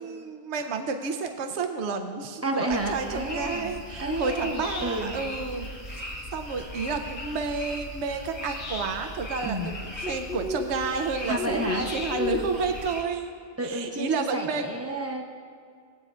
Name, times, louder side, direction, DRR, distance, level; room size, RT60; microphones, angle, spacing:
voice 1, 0.0-9.5 10.0-13.3 13.6-14.6, right 5 dB, 75° right, 5 dB, 0.9 m, -31 dB
voice 2, 2.4-5.1 9.4-9.7 11.3-11.9 12.2-12.5 13.6-15.2, right 1 dB, 15° right, 2 dB, 0.7 m, -31 dB
sound 1, 2.7-13.0, left 2 dB, 70° left, 1.8 m, -36 dB
20.0 x 8.8 x 2.4 m, 2.2 s
omnidirectional pair, 1.2 m